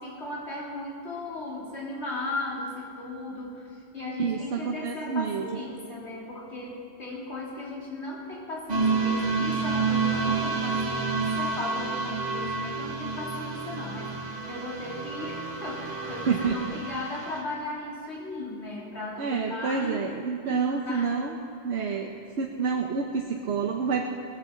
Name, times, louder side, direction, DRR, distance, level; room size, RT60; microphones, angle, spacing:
voice 1, 0.0-3.7 3.9-20.1 20.4-21.1 21.7-21.9, left 2 dB, 80° left, -5 dB, 3.6 m, -36 dB
voice 2, 4.2-5.5 16.3-16.8 19.2-21.4 21.6-22.1 22.4-24.0, right 5 dB, 80° right, 1 dB, 1.2 m, -28 dB
sound 1, 8.7-17.4, right 4 dB, 40° right, 1.6 m, -29 dB
19.0 x 14.5 x 3.8 m, 2.8 s
omnidirectional pair, 1.1 m